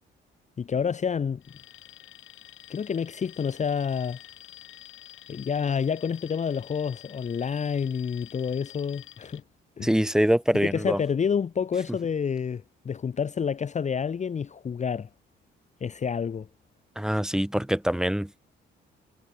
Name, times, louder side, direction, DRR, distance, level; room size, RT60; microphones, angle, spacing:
voice 1, 0.6-1.4 2.7-4.2 5.3-9.4 9.8-9.9 10.6-15.1 15.8-16.5, left 6 dB, 35° left, 0.9 m, -28 dB
Alarm, 1.4-9.4, left 13 dB, 80° left, 4.2 m, -49 dB
voice 2, 9.8-11.0 17.0-18.5, equal, 5° right, 2.0 m, -24 dB
cardioid pair, 90°, 20 cm